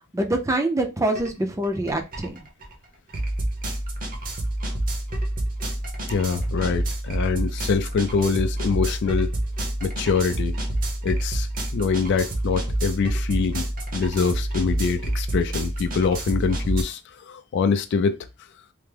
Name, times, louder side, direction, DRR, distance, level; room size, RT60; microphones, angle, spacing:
voice 1, 0.1-2.4, right 1 dB, 15° right, 0.5 m, -25 dB
sound 1, 1.1-1.3 1.6-16.8, right 1 dB, 40° right, 0.8 m, -28 dB
voice 2, 6.1-9.3 9.8-10.5 11.0-18.2, left 5 dB, 55° left, 0.3 m, -24 dB
3.3 x 2.0 x 3.2 m
head